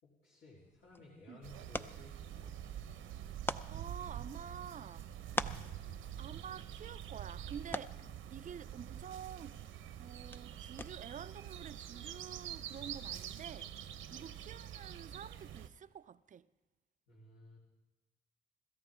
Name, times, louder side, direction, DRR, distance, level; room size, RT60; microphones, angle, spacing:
voice 1, 0.0-2.6 5.8-6.1 14.1-14.3 17.1-17.6, left 1 dB, 70° left, 4.0 m, -58 dB
sound 1, 0.6-11.3, left 2 dB, 10° left, 0.5 m, -46 dB
sound 2, 1.4-15.7, right 10 dB, 80° right, 1.0 m, -46 dB
voice 2, 3.7-5.1 6.2-9.6 10.0-13.7 14.1-16.5, right 8 dB, 40° right, 0.5 m, -49 dB
25.5 x 13.5 x 3.7 m
cardioid pair, 90°, 20 cm